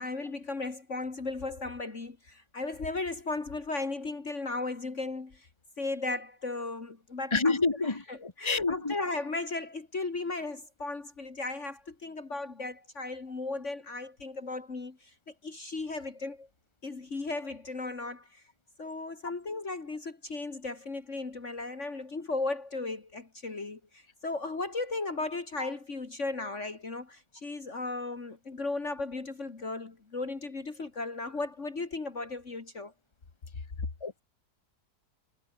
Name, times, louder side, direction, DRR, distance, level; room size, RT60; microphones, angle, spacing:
voice 1, 0.0-5.5 5.8-16.5 16.8-18.4 18.8-32.9, left 3 dB, 45° left, 2.6 m, -36 dB
voice 2, 7.3-7.9 8.2-8.9 34.0-34.2, left 3 dB, 15° left, 1.9 m, -27 dB
omnidirectional pair, 1.8 m